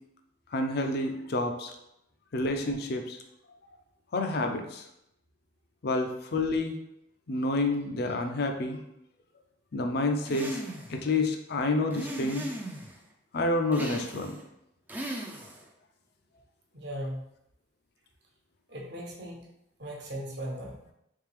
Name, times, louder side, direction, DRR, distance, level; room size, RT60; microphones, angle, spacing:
voice 1, 0.5-1.7 2.3-3.2 4.1-4.8 5.8-6.8 7.3-8.8 9.7-10.6 10.9-12.5 13.3-14.4, left 2 dB, 50° left, 5 dB, 0.5 m, -29 dB
sound 1, 10.3-11.0 11.9-13.0 13.7-14.4 14.9-15.7, right 1 dB, 10° right, 0.4 m, -37 dB
voice 2, 16.7-17.2 18.7-19.4 19.8-20.8, equal, 55° right, -1 dB, 0.8 m, -37 dB
3.5 x 3.3 x 3.3 m, 0.81 s
head